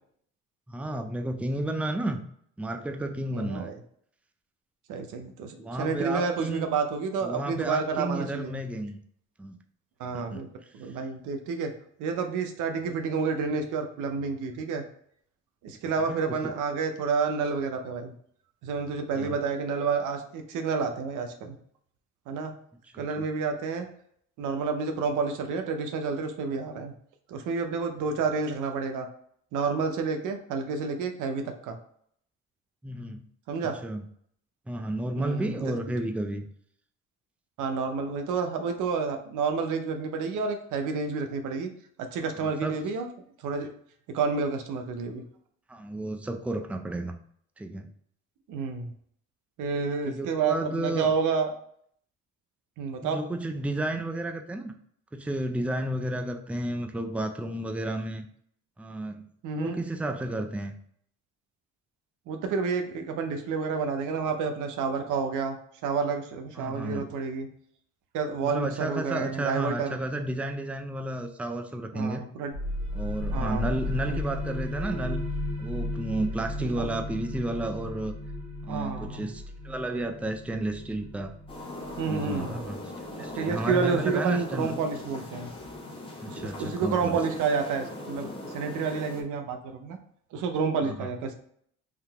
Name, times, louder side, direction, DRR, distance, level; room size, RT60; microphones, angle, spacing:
voice 1, 0.7-2.2 2.6-3.7 5.6-6.7 7.2-9.0 9.4-9.6 10.1-10.4 16.1-16.5 19.2-19.3 22.9-23.3 32.8-33.3 33.8-34.0 34.7-36.5 42.6-42.8 45.7-47.2 47.6-47.9 50.1-51.1 53.0-54.7 55.1-58.3 58.8-59.2 59.5-60.8 66.6-67.1 68.4-72.2 72.9-75.2 75.6-78.1 78.6-81.3 82.1-82.8 83.2-84.7 86.2-87.2 90.8-90.9, right 1 dB, 5° right, 5 dB, 0.4 m, -32 dB
voice 2, 3.3-3.7 4.9-8.6 10.0-10.5 10.7-11.7 12.0-14.8 15.6-18.1 18.6-21.6 22.3-22.5 23.0-23.9 24.4-26.9 27.3-29.1 29.5-31.8 33.5-33.8 35.2-35.7 37.6-41.7 42.0-43.1 43.4-43.7 44.1-45.2 48.5-48.9 49.6-51.5 52.8-53.2 59.4-59.8 62.3-65.6 65.8-67.5 68.1-70.0 71.9-72.5 73.3-74.2 76.6-76.7 78.7-79.2 82.0-82.6 83.3-85.5 86.3-90.0 90.3-91.3, right 5 dB, 90° right, 6 dB, 0.7 m, -29 dB
sound 1, 72.5-83.9, left 1 dB, 65° right, 1.4 m, -35 dB
sound 2, 81.5-89.2, left 1 dB, 15° left, 1.0 m, -39 dB
3.7 x 2.8 x 3.4 m, 0.65 s
cardioid pair, 90°, 30 cm